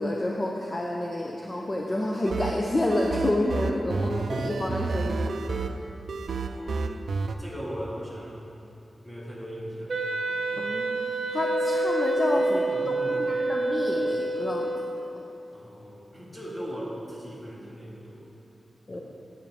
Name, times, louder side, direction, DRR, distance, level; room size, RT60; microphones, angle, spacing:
voice 1, 0.0-5.4 10.6-12.6 12.9-14.7 15.0-15.1 18.9-19.0, left 1 dB, 30° left, -1 dB, 0.5 m, -29 dB
sound 1, 2.3-7.4, right 3 dB, 80° right, 0.4 m, -31 dB
voice 2, 6.3-7.0 7.4-8.4 9.0-10.0 10.3-10.7 12.3-13.2 15.5-18.3 18.9-19.0, equal, 10° left, -6 dB, 1.7 m, -39 dB
Wind instrument woodwind instrument, 9.9-15.1, right 2 dB, 50° right, 0.8 m, -27 dB
9.1 x 7.2 x 3.5 m, 2.7 s
wide cardioid pair, 125°, 0 cm